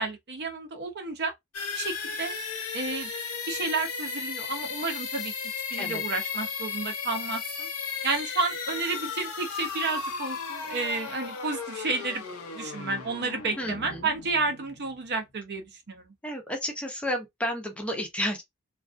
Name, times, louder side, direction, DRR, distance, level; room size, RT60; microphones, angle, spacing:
voice 1, 0.0-1.3 1.7-2.3 2.7-3.1 3.5-5.3 5.7-7.7 8.0-12.2 12.5-16.1, right 3 dB, 50° right, 0.6 m, -31 dB
sound 1, 1.5-15.2, left 5 dB, 75° left, 0.7 m, -35 dB
voice 2, 13.6-14.1 16.2-18.4, equal, 5° left, 0.5 m, -32 dB
2.3 x 2.2 x 2.4 m
head